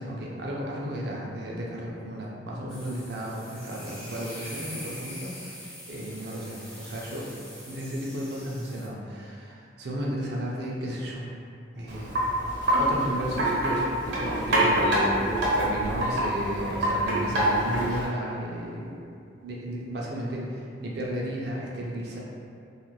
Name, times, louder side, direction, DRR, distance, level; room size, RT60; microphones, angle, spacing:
voice 1, 0.0-5.3 5.9-7.3 7.7-11.3 11.8-12.1 12.8-19.0 19.4-22.2, equal, 55° right, -3 dB, 0.5 m, -33 dB
sound 1, 2.7-8.9, equal, 5° left, 0.4 m, -43 dB
Wind chime, 11.9-18.1, right 1 dB, 75° right, 0.9 m, -26 dB
2.4 x 2.4 x 3.1 m, 2.4 s
head